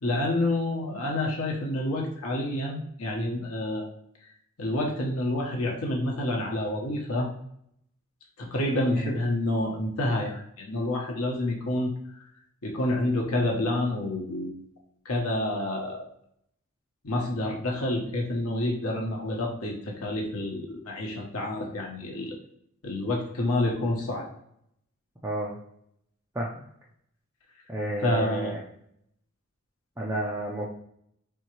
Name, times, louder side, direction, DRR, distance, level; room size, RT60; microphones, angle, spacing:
voice 1, 0.0-3.9 4.2-4.3 4.6-7.3 8.4-11.9 12.6-14.6 15.0-16.0 17.0-22.4 22.8-24.3 28.0-28.5, left 1 dB, 80° left, 0 dB, 1.0 m, -28 dB
voice 2, 25.2-25.6 26.3-26.5 27.7-28.6 30.0-30.7, right 1 dB, 10° right, -4 dB, 0.6 m, -31 dB
4.5 x 3.5 x 3.0 m, 0.73 s
head